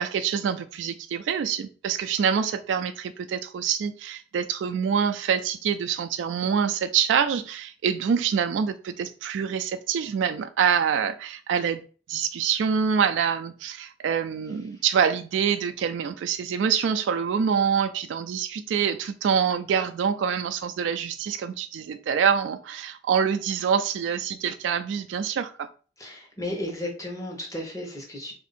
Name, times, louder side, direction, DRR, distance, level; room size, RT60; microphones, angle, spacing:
voice 1, 0.0-11.8 12.1-25.7, right 7 dB, 90° right, 9 dB, 0.3 m, -26 dB
voice 2, 26.0-28.3, left 1 dB, 20° left, 0 dB, 1.0 m, -34 dB
3.6 x 2.6 x 4.1 m, 0.39 s
head